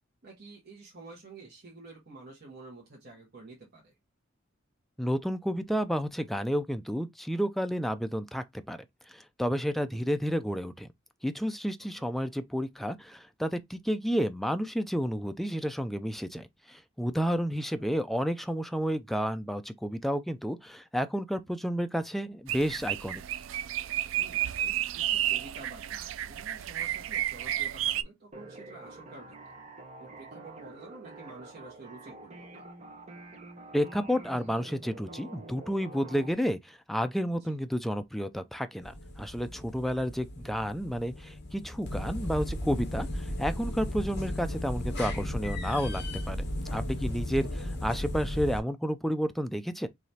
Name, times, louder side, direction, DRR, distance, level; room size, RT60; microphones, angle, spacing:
voice 1, 0.2-4.0 9.7-10.0 11.8-12.1 17.4-17.9 24.2-29.3 30.0-32.6 37.3-37.6 47.0-47.2, right 3 dB, 55° right, 1.4 m, -50 dB
voice 2, 5.0-10.9 11.2-23.2 33.7-46.4 46.7-49.9, equal, ahead, 0.4 m, -31 dB
sound 1, 22.5-28.0, right 12 dB, 70° right, 0.3 m, -31 dB
sound 2, 28.3-36.3, right 2 dB, 35° right, 1.2 m, -47 dB
sound 3, 38.8-48.6, left 1 dB, 55° left, 1.2 m, -35 dB
4.8 x 3.1 x 2.8 m
head